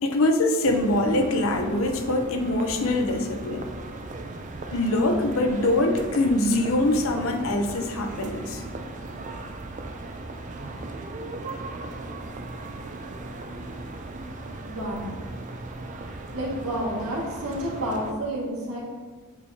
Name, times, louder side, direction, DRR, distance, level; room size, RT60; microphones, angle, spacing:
voice 1, 0.0-3.7 4.7-8.6, left 1 dB, 65° left, 5 dB, 0.7 m, -23 dB
sound 1, 0.6-18.1, right 2 dB, 35° right, 0.4 m, -37 dB
voice 2, 14.6-15.1 16.3-18.8, equal, 85° right, -4 dB, 1.8 m, -30 dB
8.3 x 4.5 x 2.8 m, 1.5 s
head